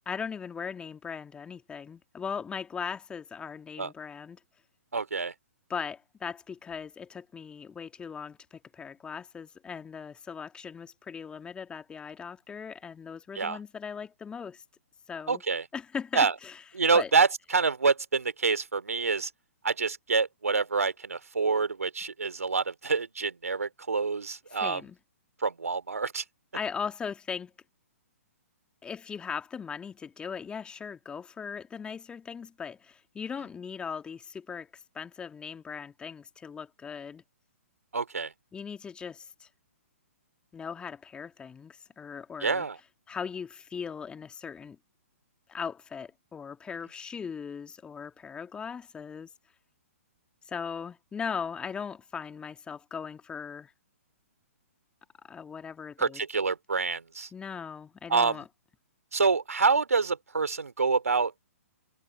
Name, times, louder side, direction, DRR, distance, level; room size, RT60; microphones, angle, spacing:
voice 1, 0.1-4.4 5.7-14.6 15.1-15.4 15.7-16.6 16.9-17.1 24.5-25.0 26.5-27.5 28.8-37.2 38.5-39.5 40.5-42.7 43.1-44.8 45.5-49.3 50.5-53.7 55.2-56.2 57.3-58.4, left 6 dB, 10° left, 2.3 m, -39 dB
voice 2, 4.9-5.3 13.3-13.6 15.3-15.6 16.1-16.3 16.7-19.3 19.6-24.8 25.4-26.2 37.9-38.3 42.4-42.8 56.0-57.3 58.1-58.4 59.1-61.3, right 4 dB, 80° right, 2.9 m, -27 dB
figure-of-eight pair, 125°, 8 cm